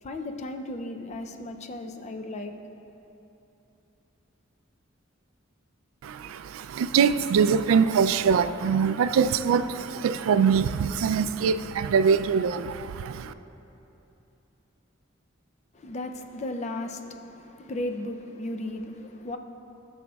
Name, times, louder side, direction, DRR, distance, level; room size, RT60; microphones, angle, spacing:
voice 1, 0.0-2.8 15.7-19.4, left 1 dB, 35° left, 0.4 m, -35 dB
voice 2, 6.0-13.3, right 6 dB, 85° right, 0.3 m, -23 dB
17.0 x 6.2 x 2.3 m
head